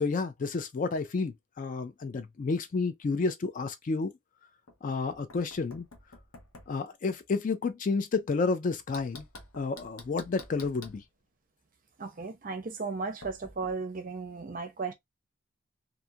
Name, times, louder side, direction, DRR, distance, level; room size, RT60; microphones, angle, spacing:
voice 1, 0.0-4.1 4.8-5.9 6.7-9.3 9.6-11.0, left 4 dB, 40° left, 0.3 m, -30 dB
Knock, 4.7-6.8 8.9-11.0 13.2-13.7, left 3 dB, 75° left, 0.8 m, -50 dB
voice 2, 12.0-14.9, right 4 dB, 40° right, 0.6 m, -35 dB
2.6 x 2.3 x 2.7 m
head